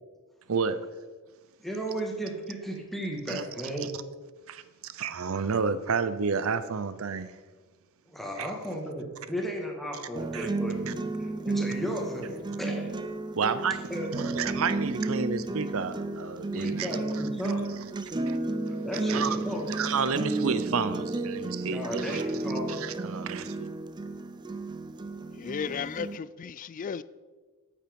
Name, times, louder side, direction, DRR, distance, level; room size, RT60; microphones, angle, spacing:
voice 1, 1.6-3.9 8.1-13.0 13.9-14.1 16.5-17.7 18.7-19.7 21.7-22.7, equal, ahead, 1.7 m, -35 dB
voice 2, 4.5-7.3 8.4-8.5 10.3-10.5 10.9-11.0 13.4-13.8 14.1-16.9 18.3-18.4 19.1-19.4 19.7-22.2 22.7-23.7, right 5 dB, 65° right, 0.6 m, -30 dB
sound 1, 10.2-26.2, right 2 dB, 20° right, 0.5 m, -33 dB
voice 3, 25.3-27.0, left 6 dB, 35° left, 0.3 m, -34 dB
8.6 x 8.6 x 5.2 m
head